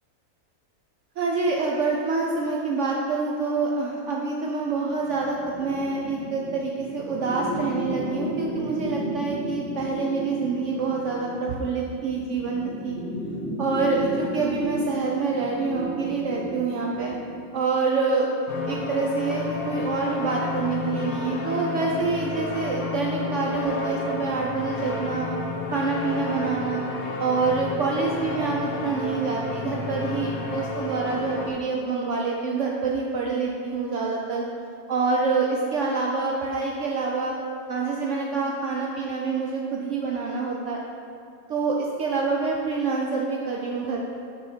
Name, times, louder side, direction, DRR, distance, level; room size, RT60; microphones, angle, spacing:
voice 1, 1.2-13.0 13.6-17.1 17.5-18.3 18.7-25.3 25.7-26.8 27.2-34.4 34.9-37.3 37.7-40.8 41.5-44.1, right 4 dB, 65° right, -1 dB, 0.8 m, -26 dB
sound 1, 5.0-17.4, equal, ahead, 1.1 m, -34 dB
sound 2, 18.5-31.5, left 4 dB, 70° left, 1.1 m, -31 dB
6.4 x 4.8 x 4.3 m, 2.5 s
omnidirectional pair, 1.6 m